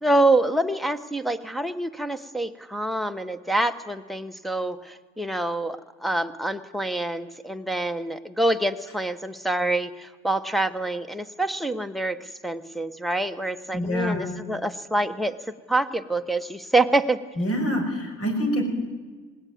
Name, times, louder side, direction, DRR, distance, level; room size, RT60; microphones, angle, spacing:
voice 1, 0.0-15.4 15.7-17.2, right 2 dB, ahead, 5 dB, 1.2 m, -26 dB
voice 2, 13.7-14.2 17.4-18.6, equal, 50° left, 4 dB, 6.1 m, -25 dB
20.0 x 17.0 x 9.6 m, 1.4 s
cardioid pair, 90°, 30 cm